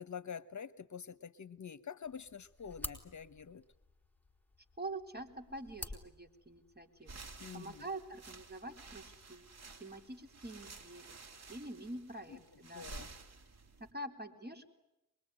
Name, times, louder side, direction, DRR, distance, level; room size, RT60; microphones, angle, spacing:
voice 1, 0.0-3.7 7.4-7.9 12.3-12.4 12.7-13.1, left 7 dB, 60° left, 16 dB, 1.0 m, -47 dB
sound 1, 2.0-7.0, left 2 dB, 5° left, 4.2 m, -50 dB
voice 2, 4.8-7.2 7.5-9.5 9.8-11.1 11.5-12.9 13.8-14.7, right 2 dB, 30° right, 4 dB, 3.9 m, -46 dB
sound 2, 7.0-13.9, right 3 dB, 50° right, 3.3 m, -53 dB
24.5 x 22.0 x 9.9 m, 0.92 s
cardioid pair, 70°, 34 cm